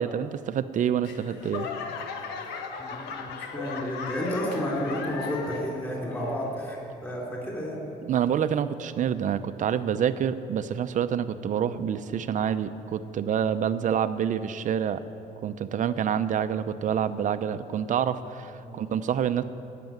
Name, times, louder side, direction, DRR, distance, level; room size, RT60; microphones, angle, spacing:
voice 1, 0.0-1.7 8.0-15.0 15.4-19.4, right 8 dB, 50° right, 12 dB, 0.7 m, -27 dB
Laughter / Clapping / Crowd, 1.0-5.8 6.1-6.7 7.2-7.3, left 5 dB, 80° left, 1.3 m, -37 dB
voice 2, 2.8-7.9 18.6-18.8, equal, 10° left, -4 dB, 3.6 m, -31 dB
16.5 x 6.9 x 9.5 m, 2.9 s
cardioid pair, 110°, 17 cm